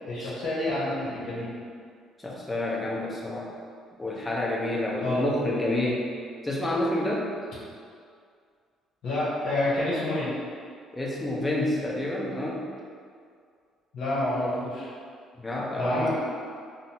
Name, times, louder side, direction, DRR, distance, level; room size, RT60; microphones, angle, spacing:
voice 1, 0.1-1.5 5.0-5.4 9.0-10.3 13.9-14.9 15.8-16.1, left 1 dB, 70° left, -9 dB, 0.9 m, -28 dB
voice 2, 2.2-3.5 4.0-6.1 6.4-7.3 10.9-12.6 15.4-16.1, left 1 dB, 15° left, -4 dB, 0.7 m, -28 dB
3.9 x 2.0 x 2.8 m, 2.2 s
supercardioid pair, 70°, 0 cm